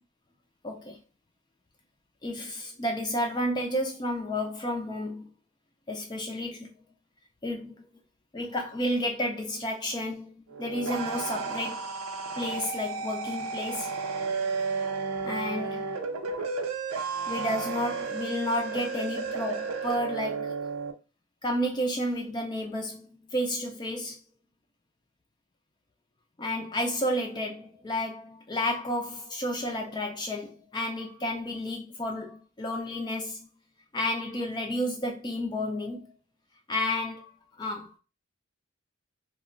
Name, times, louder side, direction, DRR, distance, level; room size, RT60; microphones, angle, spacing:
voice 1, 0.6-1.0 2.2-5.3 5.9-6.7 7.4-7.9 8.3-10.3 10.6-11.9 12.3-13.9 15.2-15.9 17.3-20.5 21.4-23.1 23.3-24.2 26.4-33.5 33.9-36.1 36.7-37.3 37.6-37.9, left 1 dB, 20° left, 0.4 m, -31 dB
sound 1, 10.5-20.9, right 4 dB, 90° right, 0.5 m, -33 dB
2.2 x 2.1 x 3.7 m
head